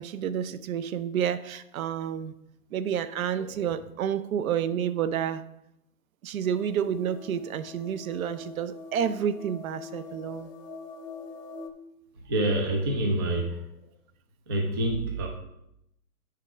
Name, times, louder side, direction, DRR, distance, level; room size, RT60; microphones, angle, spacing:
voice 1, 0.0-2.3 2.7-5.4 6.2-10.5, right 8 dB, 65° right, 0.7 m, -30 dB
voice 2, 3.4-3.7 12.3-13.6 14.5-15.3, right 1 dB, 20° right, 0.3 m, -27 dB
sound 1, 6.4-11.7, left 4 dB, 55° left, 1.0 m, -44 dB
8.4 x 4.5 x 5.0 m
hypercardioid pair, 135°, 46 cm